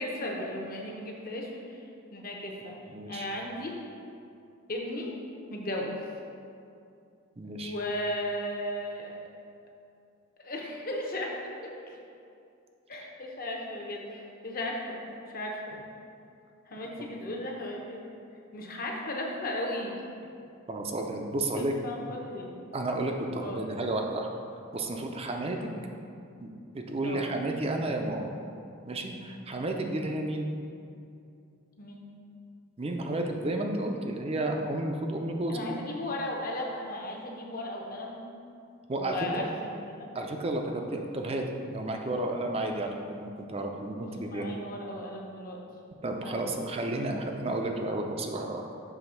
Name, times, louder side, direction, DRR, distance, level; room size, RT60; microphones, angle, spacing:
voice 1, 0.0-1.6 2.1-2.8 3.1-3.7 4.7-5.1 5.5-5.9 7.6-9.2 10.4-12.0 12.9-15.7 16.7-18.0 18.5-19.9 21.6-22.5 23.4-23.6 27.0-27.2 31.8-32.1 35.5-38.2 39.0-40.1 44.3-45.6 46.2-46.4, left 1 dB, 45° left, 0 dB, 0.9 m, -36 dB
voice 2, 2.9-3.3 7.4-7.7 20.7-21.7 22.7-24.3 24.7-25.7 26.4-28.3 28.9-30.5 32.8-35.6 38.9-39.5 40.1-44.5 46.0-48.7, right 2 dB, 30° right, 3 dB, 0.5 m, -32 dB
7.1 x 3.4 x 5.6 m, 2.5 s
head